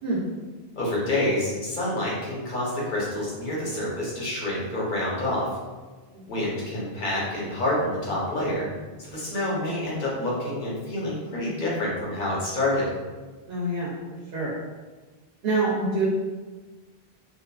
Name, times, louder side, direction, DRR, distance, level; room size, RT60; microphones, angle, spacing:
voice 1, 0.7-5.5 6.3-8.7 9.0-12.9, left 1 dB, 55° left, -6 dB, 0.9 m, -27 dB
voice 2, 13.5-14.5 15.4-16.1, right 2 dB, 75° right, -5 dB, 0.8 m, -27 dB
2.7 x 2.4 x 2.2 m, 1.3 s
omnidirectional pair, 1.1 m